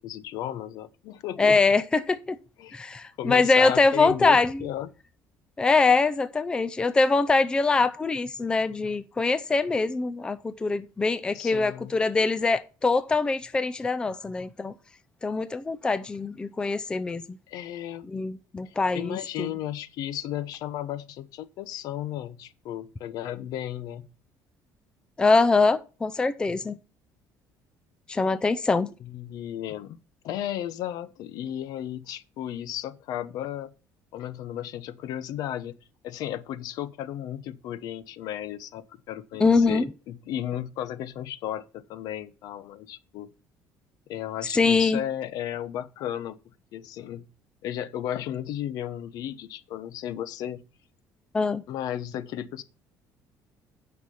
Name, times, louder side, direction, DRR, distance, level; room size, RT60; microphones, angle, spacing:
voice 1, 0.0-1.6 2.6-2.8 3.2-4.9 11.3-11.9 17.5-18.1 18.7-24.1 29.0-30.0 30.2-33.7 34.1-35.7 36.0-43.3 44.1-46.4 46.7-47.3 47.6-50.6 51.7-52.6, left 11 dB, 65° left, 0.9 m, -34 dB
voice 2, 1.4-2.4 2.7-4.5 5.6-14.7 15.2-17.2 18.1-19.5 25.2-26.8 28.1-28.9 39.4-39.9 44.5-45.0 51.3-51.6, left 3 dB, 15° left, 0.5 m, -23 dB
9.3 x 5.9 x 5.6 m
cardioid pair, 155°, 7 cm